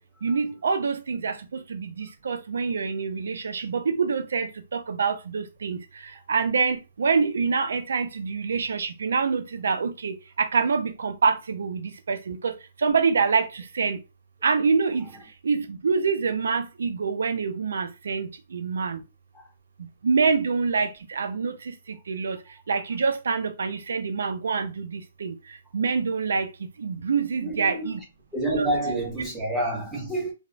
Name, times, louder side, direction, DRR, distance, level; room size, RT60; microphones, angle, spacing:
voice 1, 0.2-14.0 14.4-15.1 15.4-19.0 20.0-22.4 22.7-25.3 25.7-26.5 26.8-28.0 28.6-28.7, right 5 dB, 85° right, 0.4 m, -26 dB
voice 2, 27.4-28.0 28.3-30.3, right 1 dB, 5° right, 1.0 m, -28 dB
2.9 x 2.0 x 2.5 m
hypercardioid pair, 155°, 0 cm